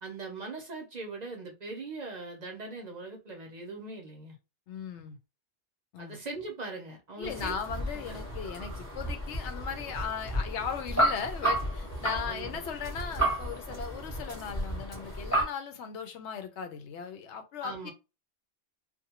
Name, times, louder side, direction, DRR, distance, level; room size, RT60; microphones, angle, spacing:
voice 1, 0.0-4.4 6.0-7.6 8.1-8.2 12.3-12.6 17.6-17.9, right 3 dB, 45° right, 0.6 m, -40 dB
voice 2, 4.7-5.2 5.9-6.2 7.2-17.9, left 7 dB, 85° left, 0.9 m, -38 dB
sound 1, 7.2-15.4, right 1 dB, 15° left, 0.8 m, -32 dB
2.5 x 2.2 x 2.8 m
omnidirectional pair, 1.1 m